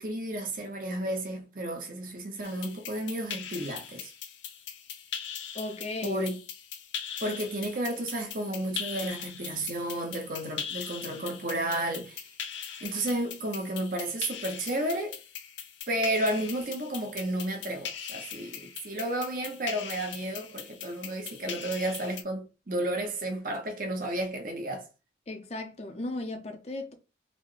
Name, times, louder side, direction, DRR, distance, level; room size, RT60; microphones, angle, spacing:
voice 1, 0.0-4.1 6.0-6.4 7.2-12.2 12.8-15.2 15.9-24.9, right 1 dB, 45° right, 0.8 m, -32 dB
sound 1, 2.4-22.2, left 8 dB, 80° left, 0.5 m, -41 dB
voice 2, 5.5-6.3 25.3-26.9, left 2 dB, 35° left, 0.6 m, -35 dB
4.1 x 2.2 x 3.2 m
head